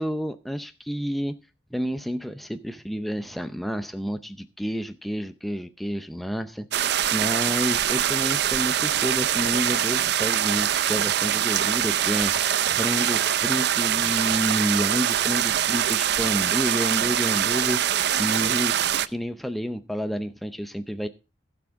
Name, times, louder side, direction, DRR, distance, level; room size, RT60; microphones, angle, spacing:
voice 1, 0.0-1.3 1.7-18.7 19.0-21.1, equal, ahead, 8 dB, 0.6 m, -30 dB
sound 1, 6.7-19.1, right 10 dB, 65° right, 0.5 m, -23 dB
15.5 x 6.2 x 4.6 m, 0.29 s
head